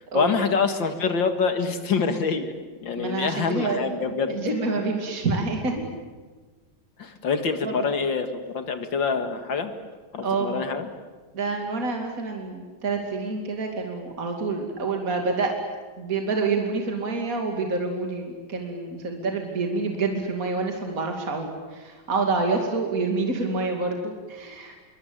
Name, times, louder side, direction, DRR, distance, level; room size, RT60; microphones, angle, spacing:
voice 1, 0.1-2.5 2.8-4.3 7.0-9.7 10.1-10.9, left 5 dB, 70° left, 8 dB, 2.5 m, -25 dB
voice 2, 3.0-4.0 4.3-5.8 7.6-7.9 10.2-10.6 11.3-15.5 16.0-24.7, right 3 dB, 45° right, 2 dB, 3.1 m, -27 dB
26.5 x 23.5 x 8.9 m, 1.4 s
omnidirectional pair, 2.2 m